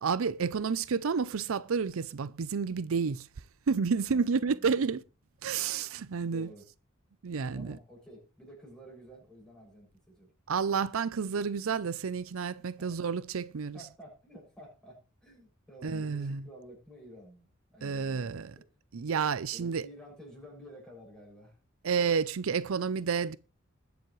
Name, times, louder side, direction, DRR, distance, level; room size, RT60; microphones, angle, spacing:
voice 1, 0.0-3.3 3.7-5.0 5.4-6.5 7.2-7.8 10.5-13.8 15.8-16.4 17.8-18.5 18.9-19.8 21.8-23.4, right 5 dB, 80° right, 0.5 m, -30 dB
voice 2, 4.0-4.7 6.2-6.7 7.5-10.3 12.8-12.9 13.7-18.6 19.5-21.6, equal, 5° left, 6.6 m, -51 dB
21.0 x 7.1 x 3.2 m
head